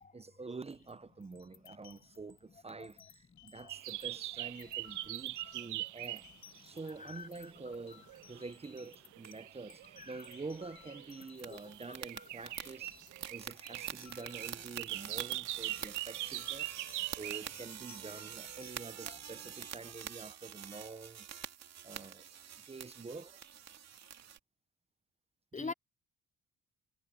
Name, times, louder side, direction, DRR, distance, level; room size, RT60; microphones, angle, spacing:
voice 1, 0.1-6.3 6.6-21.3 21.8-22.3 22.6-23.4 25.5-25.7, right 3 dB, 20° right, 0.8 m, -47 dB
sound 1, 0.7-4.3 4.5-12.0 12.2-18.8, left 8 dB, 65° left, 2.8 m, -60 dB
sound 2, 3.7-7.0 7.3-17.8 18.1-18.6, right 17 dB, 75° right, 0.5 m, -43 dB
voice 2, 6.8-7.5 10.0-10.3 12.2-12.3 19.1-19.2 25.5-25.7, left 4 dB, 25° left, 0.7 m, -44 dB
sound 3, 11.4-24.4, right 9 dB, 60° right, 2.7 m, -47 dB
cardioid pair, 90°, 30 cm